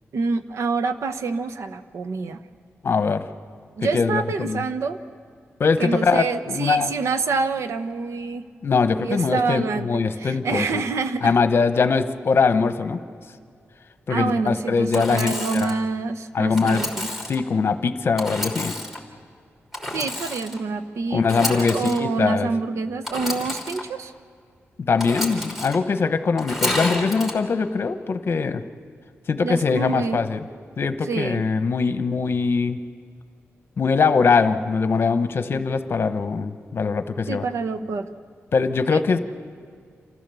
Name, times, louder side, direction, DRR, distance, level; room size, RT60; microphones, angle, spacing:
voice 1, 0.1-2.4 3.8-5.0 5.8-8.4 9.0-11.3 14.1-17.1 19.9-24.1 29.4-30.2 31.0-31.4 37.3-38.1 38.9-39.0, right 4 dB, 80° right, 9 dB, 0.9 m, -27 dB
voice 2, 2.8-3.2 3.8-4.6 5.6-6.9 8.6-10.8 11.2-13.0 14.1-15.8 16.3-16.8 17.3-18.7 21.1-22.5 24.8-28.6 29.3-30.4 30.8-32.8 33.8-37.4 38.5-39.2, left 5 dB, 55° left, 9 dB, 1.0 m, -22 dB
Engine / Sawing, 14.9-15.8 16.6-17.4 18.2-19.0 19.7-20.6 21.2-22.0 23.0-23.8 25.0-25.8 26.4-27.3, left 1 dB, 5° right, 3.1 m, -30 dB
27.5 x 14.5 x 7.0 m, 2.1 s
wide cardioid pair, 115°, 5 cm